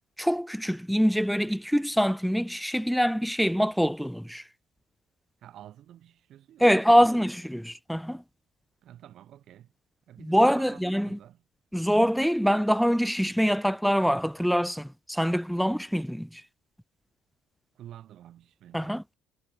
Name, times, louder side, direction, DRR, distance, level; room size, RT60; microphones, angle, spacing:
voice 1, 0.2-4.4 6.6-8.2 10.2-11.2 11.7-16.4 18.7-19.0, equal, ahead, 0.3 m, -24 dB
voice 2, 5.4-7.3 8.8-9.7 10.1-11.4 17.7-19.0, right 11 dB, 55° right, 1.6 m, -49 dB
hypercardioid pair, 65°, 0 cm